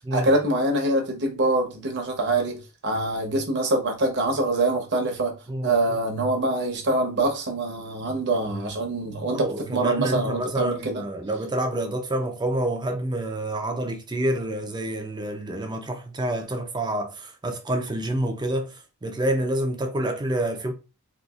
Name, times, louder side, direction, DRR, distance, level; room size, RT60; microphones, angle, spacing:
voice 1, 0.1-5.3 5.6-11.0, right 2 dB, 50° right, 0.9 m, -24 dB
voice 2, 5.5-5.8 9.3-18.7 19.0-20.7, right 1 dB, 20° right, 0.5 m, -28 dB
3.9 x 2.5 x 2.4 m
head